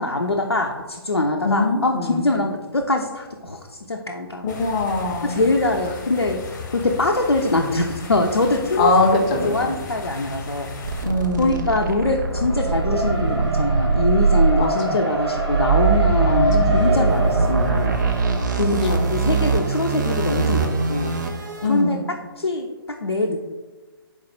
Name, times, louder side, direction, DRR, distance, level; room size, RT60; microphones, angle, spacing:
voice 1, 0.0-4.5 5.2-8.9 9.4-10.7 11.4-17.9 18.5-21.1 21.6-22.0 22.4-23.4, left 2 dB, 85° left, 1 dB, 0.4 m, -23 dB
voice 2, 1.4-2.2 4.4-5.4 8.8-9.7 11.0-11.7 14.6-14.9 16.2-16.7 18.9-19.0 21.6-22.0, left 2 dB, 15° left, 2 dB, 0.3 m, -22 dB
sound 1, 4.5-11.1, left 4 dB, 45° left, 0.7 m, -36 dB
sound 2, 10.8-21.7, right 4 dB, 50° right, 0.5 m, -22 dB
Race car auto racing, 10.9-21.9, right 1 dB, 90° right, 1.1 m, -29 dB
4.2 x 2.0 x 4.4 m, 1.3 s
figure-of-eight pair, 135°, 13 cm